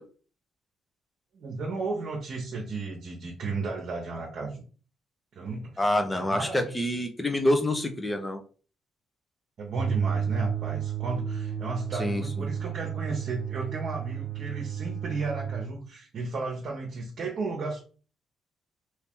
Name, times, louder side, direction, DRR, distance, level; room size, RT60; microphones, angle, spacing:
voice 1, 1.3-4.6 5.3-5.8 6.1-6.8 9.6-17.8, right 3 dB, 60° right, 0 dB, 0.9 m, -34 dB
voice 2, 5.8-8.4 12.0-12.4, left 1 dB, 15° left, 5 dB, 0.7 m, -27 dB
sound 1, 9.7-15.7, right 8 dB, 40° right, 0.4 m, -32 dB
2.8 x 2.7 x 3.7 m, 0.38 s
cardioid pair, 90°, 0 cm